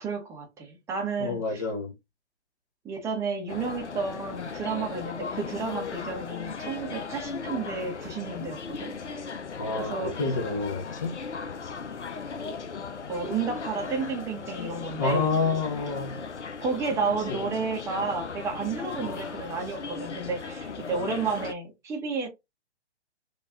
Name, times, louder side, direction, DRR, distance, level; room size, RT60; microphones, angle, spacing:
voice 1, 0.0-1.4 2.8-8.9 9.8-10.1 13.1-15.3 16.6-22.3, right 4 dB, 10° right, 0.7 m, -31 dB
voice 2, 1.2-1.9 9.6-11.2 15.0-16.3 17.3-17.6 19.0-19.4, left 3 dB, 20° left, 0.4 m, -29 dB
sound 1, 3.5-21.5, left 5 dB, 85° left, 0.6 m, -37 dB
3.3 x 2.4 x 3.5 m
figure-of-eight pair, 130°, 34 cm